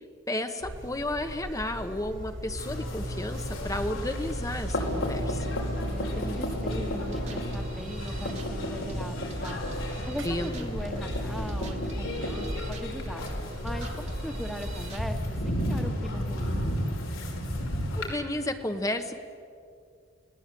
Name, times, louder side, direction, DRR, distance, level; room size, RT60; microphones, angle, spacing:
voice 1, 0.3-5.5 10.2-10.6 17.9-19.1, left 1 dB, 15° left, 7 dB, 1.1 m, -32 dB
Buzz, 0.6-15.6, equal, 70° right, 4.3 m, -38 dB
sound 1, 2.6-18.1, equal, 85° left, 5.5 m, -33 dB
voice 2, 5.8-9.7 10.1-13.2 13.6-16.6, equal, ahead, 5 dB, 1.6 m, -39 dB
sound 2, 6.7-15.3, right 1 dB, 35° right, 2.0 m, -41 dB
29.0 x 19.0 x 8.5 m, 2.3 s
head